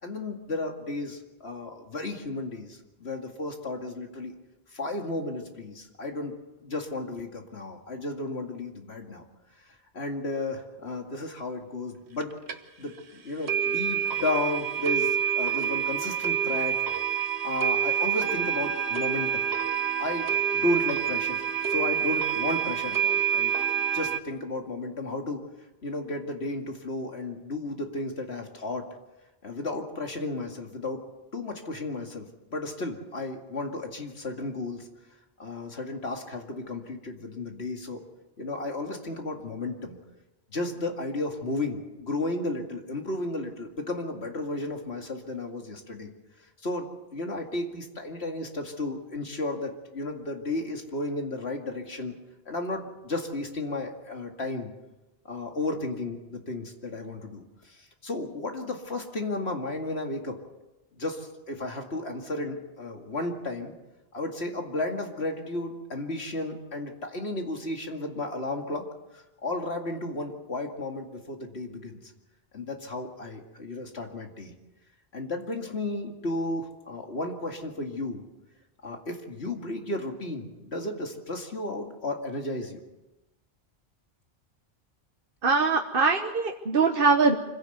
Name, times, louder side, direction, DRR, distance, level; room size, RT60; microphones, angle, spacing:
voice 1, 0.0-4.3 4.7-6.3 6.6-9.2 9.9-12.4 12.8-16.8 17.1-19.5 20.0-21.4 21.7-23.5 23.9-25.4 25.8-28.9 29.4-31.0 31.3-34.9 35.4-38.0 38.4-40.0 40.5-46.1 46.6-52.1 52.5-54.7 55.2-60.4 60.9-63.7 64.1-68.8 69.1-72.0 72.5-74.5 75.1-78.2 78.8-82.8, left 2 dB, 80° left, 3 dB, 2.5 m, -33 dB
sound 1, 12.2-12.3 12.5-12.6 13.0-13.1 13.5-24.2, right 8 dB, 80° right, 1.4 m, -27 dB
voice 2, 85.4-87.3, right 4 dB, 60° right, 3 dB, 1.4 m, -22 dB
25.5 x 16.5 x 8.0 m, 1.0 s
omnidirectional pair, 1.1 m